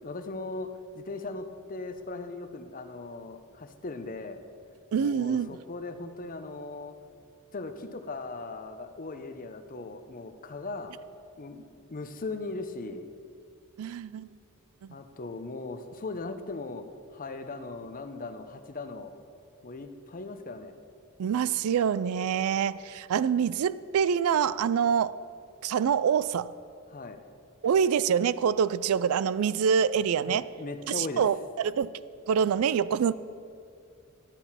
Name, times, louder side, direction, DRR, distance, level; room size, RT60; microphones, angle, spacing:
voice 1, 0.0-4.4 5.0-7.0 7.5-11.0 11.4-11.6 11.9-13.1 14.9-16.8 17.1-19.1 19.6-20.7 26.9-27.2 30.3-31.2, left 3 dB, 40° left, 8 dB, 0.7 m, -38 dB
voice 2, 4.9-5.6 13.8-14.3 14.8-15.0 21.2-25.2 25.6-26.5 27.6-30.5 30.9-31.9 32.3-33.1, right 7 dB, 75° right, 17 dB, 0.3 m, -26 dB
11.5 x 9.1 x 5.7 m, 2.4 s
head